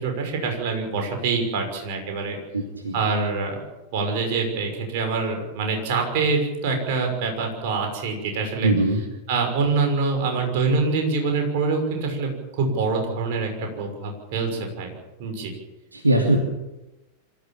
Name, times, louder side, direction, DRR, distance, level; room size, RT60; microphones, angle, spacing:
voice 1, 0.0-2.4 2.9-3.6 3.9-8.7 9.3-12.3 12.6-14.9 15.2-15.5, right 4 dB, 50° right, 3 dB, 6.1 m, -25 dB
voice 2, 2.5-3.0 8.6-9.0 15.9-16.4, right 1 dB, 80° right, 1 dB, 2.8 m, -21 dB
25.5 x 15.0 x 7.5 m, 1.0 s
figure-of-eight pair, 90°, 0 cm